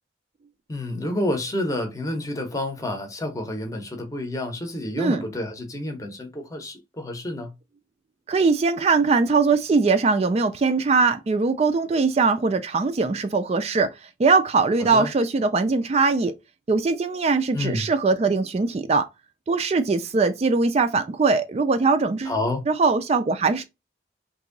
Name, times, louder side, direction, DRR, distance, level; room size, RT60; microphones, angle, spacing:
voice 1, 0.7-7.5 14.9-15.1 17.5-17.9 22.3-22.6, left 1 dB, 15° left, 0.7 m, -29 dB
voice 2, 8.3-16.3 16.7-19.1 19.5-22.3 22.7-23.6, right 4 dB, 35° right, 0.3 m, -21 dB
2.9 x 2.6 x 3.8 m
head